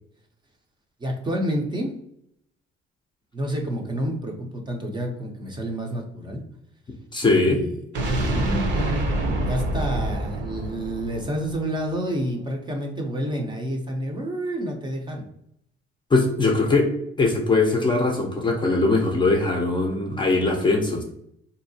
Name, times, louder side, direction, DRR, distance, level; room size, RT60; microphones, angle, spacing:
voice 1, 1.0-1.9 3.3-6.4 7.2-7.7 8.2-15.2, equal, 20° right, 2 dB, 0.6 m, -29 dB
voice 2, 7.1-7.6 16.1-16.9 17.2-21.0, left 3 dB, 20° left, 2 dB, 0.6 m, -21 dB
sound 1, 7.9-11.9, right 1 dB, 60° right, 0.8 m, -26 dB
4.2 x 2.7 x 2.7 m, 0.76 s
cardioid pair, 145°, 21 cm